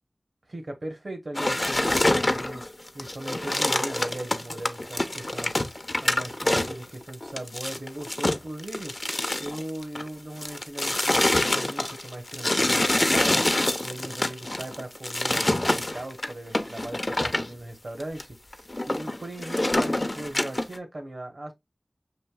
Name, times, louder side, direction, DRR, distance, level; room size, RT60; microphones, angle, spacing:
voice 1, 0.5-2.6 2.9-9.0 9.4-13.5 13.8-21.5, right 1 dB, 70° right, 1.0 m, -38 dB
sound 1, 1.3-10.1 10.4-17.5 18.0-18.2 18.5-20.8, left 1 dB, 45° left, 0.6 m, -26 dB
6.5 x 2.7 x 2.2 m
wide cardioid pair, 40°, 0 cm